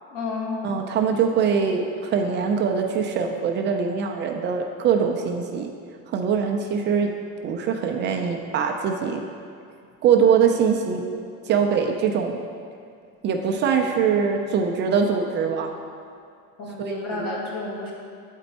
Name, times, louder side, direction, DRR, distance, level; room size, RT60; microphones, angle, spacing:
voice 1, 0.1-0.6 16.6-17.9, left 3 dB, 60° left, -4 dB, 1.7 m, -30 dB
voice 2, 0.6-5.7 6.1-7.1 7.4-9.2 10.0-11.0 11.5-12.4 13.2-15.7 16.8-17.3, right 6 dB, 35° right, 3 dB, 0.4 m, -22 dB
8.1 x 4.4 x 4.0 m, 2.3 s
cardioid pair, 150°, 31 cm